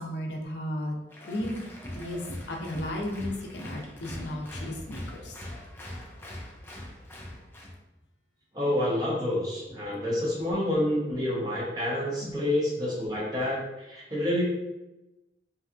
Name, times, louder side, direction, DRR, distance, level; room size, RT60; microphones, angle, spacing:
voice 1, 0.0-1.6 1.9-2.2 2.5-5.4 12.2-12.4, left 1 dB, 70° left, 1 dB, 0.5 m, -34 dB
Applause, 1.1-7.8, left 1 dB, 10° left, 0.3 m, -41 dB
voice 2, 8.5-14.4, left 1 dB, 20° right, -6 dB, 0.8 m, -28 dB
2.7 x 2.4 x 2.4 m, 0.99 s
head